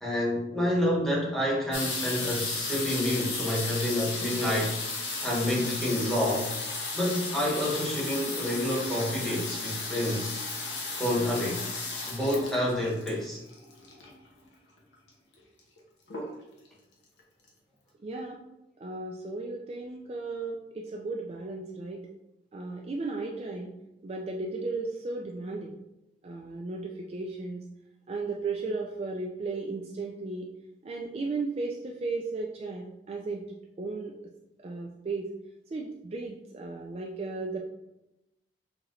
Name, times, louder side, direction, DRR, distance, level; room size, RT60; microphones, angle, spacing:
voice 1, 0.0-4.8 5.2-6.5 6.9-10.3 10.9-11.7 12.1-13.4, left 1 dB, ahead, -5 dB, 1.0 m, -28 dB
sound 1, 1.7-14.3 15.1-15.2 15.4-15.8 16.1-16.7 17.2-17.3 17.5-17.6, left 3 dB, 75° left, 1.0 m, -34 dB
voice 2, 18.0-18.4 18.8-22.0 22.5-23.7 24.0-25.7 26.2-27.7 28.1-30.5 30.8-33.4 33.8-34.1 34.6-35.3 35.7-37.6, right 3 dB, 35° right, 0 dB, 0.3 m, -35 dB
5.6 x 2.9 x 2.6 m, 0.92 s
head